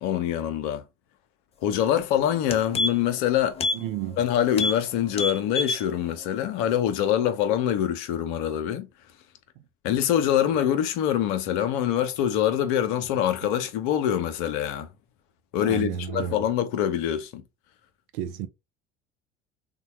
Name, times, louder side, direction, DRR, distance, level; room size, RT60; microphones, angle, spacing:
voice 1, 0.0-0.8 1.6-3.6 4.2-8.9 9.8-14.9 15.5-17.4, left 10 dB, 55° left, 0.7 m, -24 dB
sound 1, 1.9-2.0 2.3-3.2 3.6-3.8 4.1-4.2 4.5-4.8 5.1-5.8 6.2-6.3, left 2 dB, 20° left, 0.4 m, -27 dB
voice 2, 3.7-4.2 13.4-13.5 15.6-16.4 18.1-18.5, right 9 dB, 55° right, 0.5 m, -32 dB
3.5 x 2.2 x 2.9 m
figure-of-eight pair, 65°, 34 cm